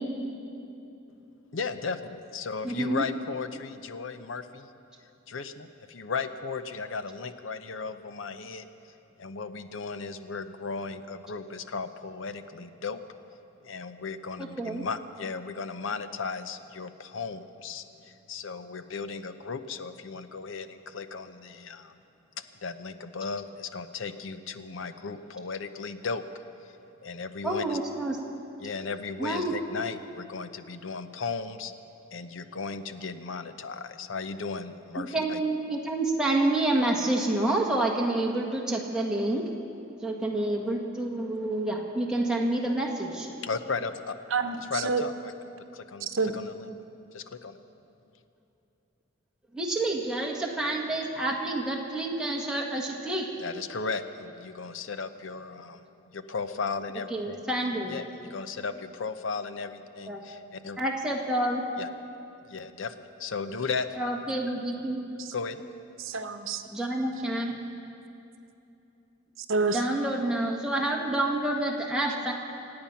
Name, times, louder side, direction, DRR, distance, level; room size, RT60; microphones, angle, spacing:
voice 1, 1.5-4.7 5.3-8.7 9.2-13.0 13.6-17.8 18.3-21.9 22.6-26.2 27.0-27.8 28.6-31.7 32.1-35.4 43.4-44.2 44.7-45.3 45.7-46.1 46.3-46.6 47.1-47.6 53.4-55.8 56.1-57.4 57.9-60.8 61.8-61.9 62.5-62.9 63.2-63.9 65.3-65.6, left 4 dB, 75° left, 11 dB, 0.7 m, -35 dB
voice 2, 2.6-3.0 14.4-14.8 27.4-28.2 29.2-29.5 35.0-39.4 40.0-43.3 49.5-53.2 57.1-57.9 60.1-60.2 60.8-61.6 64.0-65.0 66.7-67.6 69.7-72.3, right 1 dB, 5° right, -1 dB, 1.5 m, -28 dB
voice 3, 44.3-45.0 46.0-46.3 65.2-65.3 66.0-66.6 69.5-69.8, right 4 dB, 80° right, 8 dB, 0.9 m, -28 dB
26.0 x 8.8 x 5.7 m, 2.8 s
head